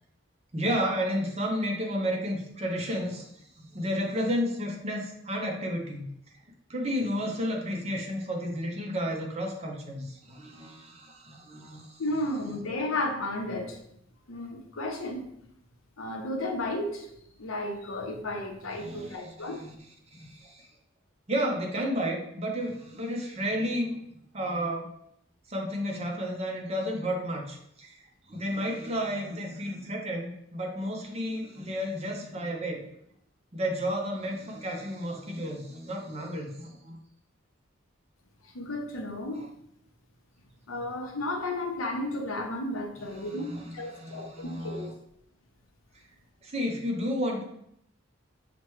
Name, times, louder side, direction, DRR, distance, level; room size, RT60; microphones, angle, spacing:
voice 1, 0.5-6.4 6.7-12.0 18.8-19.7 20.1-20.7 21.3-24.0 24.3-24.8 25.5-32.8 33.5-37.0 39.3-39.5 43.0-44.9 46.4-47.4, equal, 30° right, 0 dB, 0.6 m, -32 dB
voice 2, 12.0-13.8 14.3-15.3 16.0-17.1 17.4-19.6 38.4-39.5 40.7-44.9, left 1 dB, 90° left, 3 dB, 0.7 m, -33 dB
5.9 x 2.2 x 3.0 m, 0.74 s
head